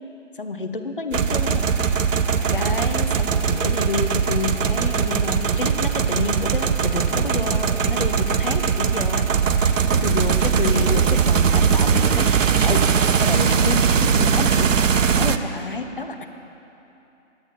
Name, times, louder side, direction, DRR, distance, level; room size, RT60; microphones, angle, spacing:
voice 1, 0.3-1.7 2.5-9.3 9.6-12.3 12.6-12.9 13.2-14.8 15.1-16.2, left 3 dB, 45° left, 7 dB, 0.6 m, -29 dB
sound 1, 1.1-15.4, right 6 dB, 75° right, 0.6 m, -20 dB
17.5 x 8.9 x 2.8 m, 2.9 s
figure-of-eight pair, 165°, 39 cm